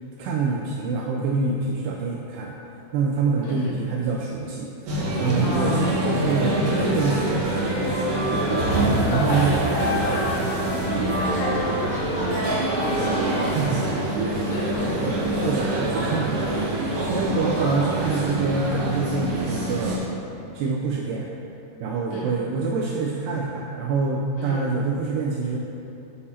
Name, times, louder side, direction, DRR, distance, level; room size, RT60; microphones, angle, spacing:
voice 1, 0.2-2.6 2.9-7.7 8.9-9.5 12.9-13.0 13.4-13.9 14.4-14.5 15.0-20.1 20.5-21.3 21.8-25.6, right 4 dB, 85° right, -1 dB, 2.4 m, -26 dB
voice 2, 3.4-3.8 5.4-5.8 8.3-13.7 14.5-15.8 17.0-17.5 22.1-22.3 24.4-24.7, left 1 dB, 75° left, -5 dB, 2.8 m, -33 dB
sound 1, 4.9-20.0, right 1 dB, 60° right, 2.4 m, -25 dB
Wind instrument woodwind instrument, 6.4-13.2, left 2 dB, 90° left, 3.0 m, -32 dB
8.6 x 6.6 x 2.8 m, 2.8 s
omnidirectional pair, 5.2 m